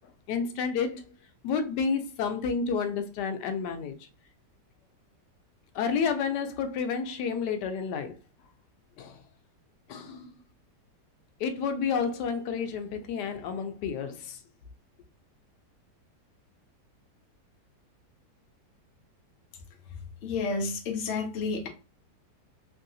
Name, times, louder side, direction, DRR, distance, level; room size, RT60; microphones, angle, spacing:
voice 1, 0.3-1.0 1.4-4.0 5.7-8.1 9.0-9.2 9.9-10.3 11.4-14.4, left 6 dB, 85° left, 1.2 m, -30 dB
voice 2, 20.2-21.7, left 4 dB, 60° left, 0.9 m, -30 dB
3.2 x 2.7 x 2.5 m
omnidirectional pair, 1.7 m